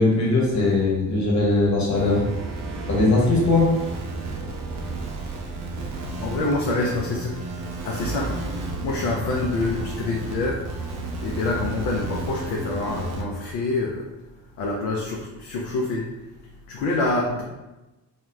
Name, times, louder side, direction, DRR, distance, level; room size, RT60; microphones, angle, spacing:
voice 1, 0.0-2.2 2.9-3.7, left 2 dB, 35° left, -4 dB, 1.0 m, -20 dB
sound 1, 1.9-13.2, right 3 dB, 35° right, 0.5 m, -32 dB
voice 2, 6.0-7.4 7.8-8.4 8.8-10.7 11.2-14.1 14.6-16.1 16.7-17.4, left 2 dB, 50° left, -1 dB, 0.5 m, -26 dB
2.2 x 2.0 x 3.2 m, 1.0 s
figure-of-eight pair, 45°, 49 cm